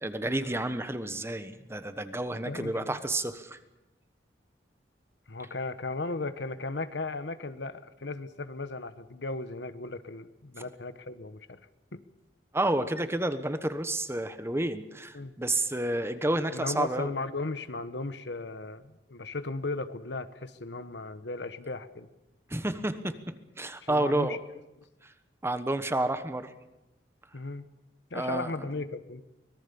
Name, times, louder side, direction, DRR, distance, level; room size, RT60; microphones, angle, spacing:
voice 1, 0.0-3.6 12.5-17.1 22.5-23.2 23.6-24.4 25.4-26.5 28.1-28.5, right 1 dB, 15° right, 11 dB, 1.2 m, -30 dB
voice 2, 2.4-3.0 5.3-11.6 11.9-12.0 15.1-15.4 16.5-22.1 23.8-24.4 27.3-27.7 28.1-29.2, left 3 dB, 80° left, 12 dB, 1.2 m, -36 dB
25.0 x 18.5 x 7.0 m, 0.94 s
head